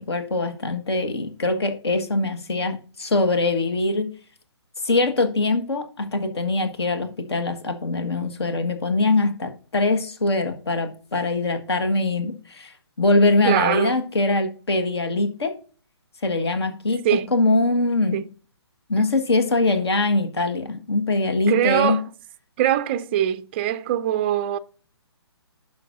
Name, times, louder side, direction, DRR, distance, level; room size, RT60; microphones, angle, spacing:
voice 1, 0.0-4.1 4.8-15.5 16.2-18.2 18.9-22.0, left 2 dB, 65° left, 1.6 m, -22 dB
voice 2, 13.4-13.9 17.0-17.3 18.1-18.2 21.5-22.0 22.6-24.6, right 11 dB, 25° right, 0.4 m, -22 dB
11.0 x 6.0 x 2.6 m
figure-of-eight pair, 135°, 14 cm